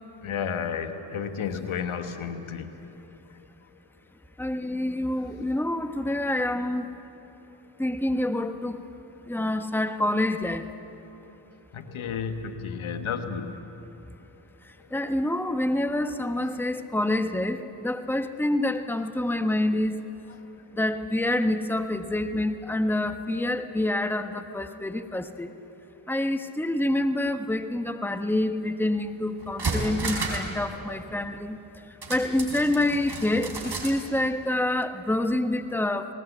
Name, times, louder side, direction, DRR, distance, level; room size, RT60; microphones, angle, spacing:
voice 1, 0.2-3.0 11.7-13.6, left 6 dB, 75° left, 7 dB, 1.5 m, -32 dB
voice 2, 4.4-6.9 7.8-8.8 9.3-10.7 14.9-20.0 20.7-25.5 26.1-31.6 32.1-36.1, left 1 dB, 5° left, 8 dB, 1.2 m, -27 dB
sound 1, 29.0-29.1 29.4-30.5 30.8-30.9 32.0-34.0 34.3-34.4, right 3 dB, 50° right, 4.7 m, -32 dB
20.0 x 19.5 x 8.2 m, 2.9 s
supercardioid pair, 40°, 49 cm